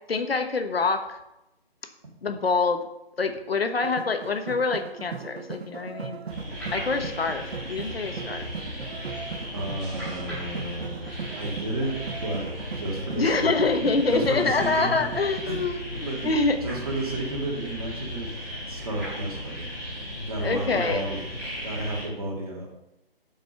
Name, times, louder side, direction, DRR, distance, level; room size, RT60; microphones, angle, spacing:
voice 1, 0.1-1.1 2.2-2.8 3.2-6.2 6.7-8.5 13.2-15.8 16.2-16.6 20.4-21.0, left 4 dB, 70° left, 7 dB, 1.1 m, -25 dB
sound 1, 3.8-15.4, right 6 dB, 85° right, 0.8 m, -38 dB
sound 2, 6.3-22.1, left 1 dB, ahead, 2.6 m, -36 dB
voice 2, 9.5-11.1 11.4-13.5 14.1-15.1 15.5-15.6 15.9-16.3 16.6-19.7 20.3-21.2 21.6-22.7, right 2 dB, 35° right, -2 dB, 2.1 m, -32 dB
7.5 x 5.3 x 5.5 m, 0.89 s
hypercardioid pair, 170°, 31 cm